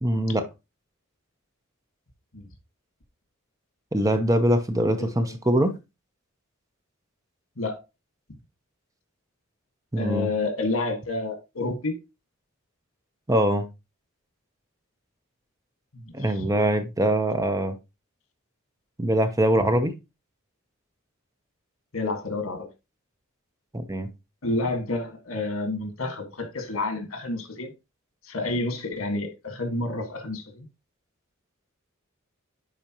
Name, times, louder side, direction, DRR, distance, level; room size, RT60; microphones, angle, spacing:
voice 1, 0.0-0.5 3.9-5.7 9.9-10.3 13.3-13.7 16.1-17.8 19.0-19.9 23.7-24.1, right 1 dB, 15° right, 0.8 m, -23 dB
voice 2, 10.0-12.0 15.9-16.0 21.9-22.7 24.4-27.7 28.3-30.7, left 2 dB, 75° left, 1.8 m, -29 dB
10.0 x 4.3 x 3.0 m
head